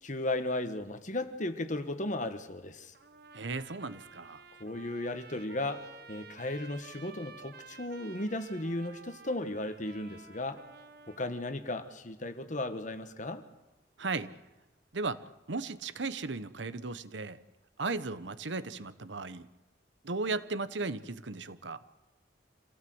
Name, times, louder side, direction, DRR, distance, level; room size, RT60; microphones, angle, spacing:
voice 1, 0.0-2.9 4.6-10.6 11.1-13.4, left 2 dB, 40° left, 9 dB, 1.5 m, -35 dB
Trumpet, 2.9-11.5, right 4 dB, 55° right, 1.2 m, -52 dB
voice 2, 3.3-4.4 14.0-14.3 14.9-17.4 17.8-19.5 20.0-21.8, right 3 dB, 75° right, 14 dB, 1.0 m, -36 dB
26.5 x 16.5 x 7.9 m, 1.0 s
head